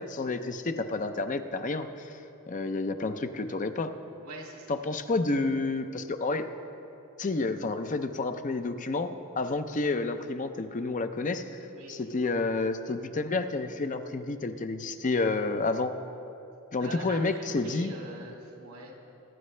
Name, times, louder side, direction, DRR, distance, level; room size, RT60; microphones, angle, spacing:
voice 1, 0.0-2.2 2.5-3.9 4.7-6.5 7.2-11.5 11.9-15.9 16.7-17.9, left 3 dB, 35° left, 9 dB, 0.5 m, -30 dB
voice 2, 4.2-4.7 11.7-12.0 16.8-18.9, right 1 dB, 75° right, -1 dB, 2.3 m, -43 dB
23.0 x 10.5 x 3.2 m, 2.8 s
head